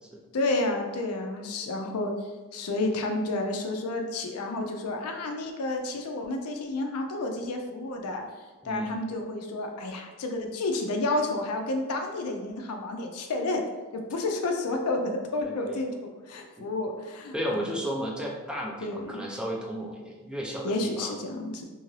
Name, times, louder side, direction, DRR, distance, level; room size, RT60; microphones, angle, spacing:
voice 1, 0.3-8.2 8.6-13.6 13.9-15.9 16.3-17.6 18.8-19.2 20.6-21.6, left 2 dB, 85° left, 3 dB, 0.4 m, -30 dB
voice 2, 8.6-9.0 15.4-15.8 16.6-16.7 17.3-21.1, equal, 5° right, -1 dB, 0.3 m, -34 dB
2.7 x 2.5 x 3.2 m, 1.3 s
head